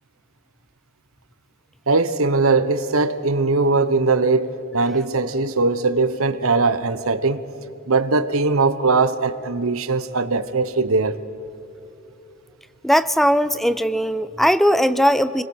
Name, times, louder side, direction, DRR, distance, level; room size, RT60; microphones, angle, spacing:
voice 1, 1.9-7.4 7.9-11.2, right 3 dB, 70° right, 1.1 m, -20 dB
voice 2, 12.8-15.4, equal, ahead, 0.5 m, -18 dB
29.0 x 21.5 x 6.4 m
head